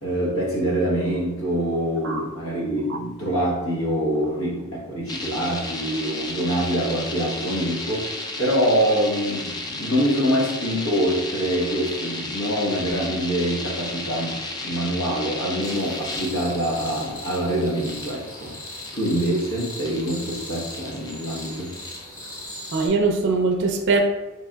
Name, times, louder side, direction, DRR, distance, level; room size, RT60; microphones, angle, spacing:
voice 1, 0.0-8.1 8.4-18.5 18.9-21.7, equal, 75° left, -4 dB, 1.0 m, -25 dB
sound 1, 5.1-22.0, left 2 dB, 20° left, 0.3 m, -34 dB
sound 2, 15.6-22.9, left 1 dB, 40° left, 1.2 m, -38 dB
voice 2, 22.7-24.0, right 4 dB, 55° right, 4 dB, 0.5 m, -21 dB
3.6 x 3.3 x 2.2 m, 1.1 s
head